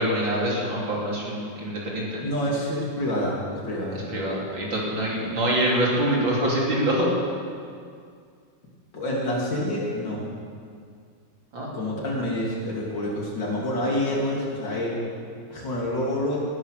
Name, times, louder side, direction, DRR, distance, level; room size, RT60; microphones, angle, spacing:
voice 1, 0.0-2.2 3.9-7.1 11.5-11.7, right 1 dB, 70° right, -4 dB, 4.2 m, -25 dB
voice 2, 2.2-4.0 5.2-5.3 8.9-10.3 11.7-15.0 15.5-16.4, left 1 dB, 65° left, -3 dB, 3.6 m, -27 dB
18.0 x 10.5 x 6.7 m, 2.2 s
omnidirectional pair, 2.2 m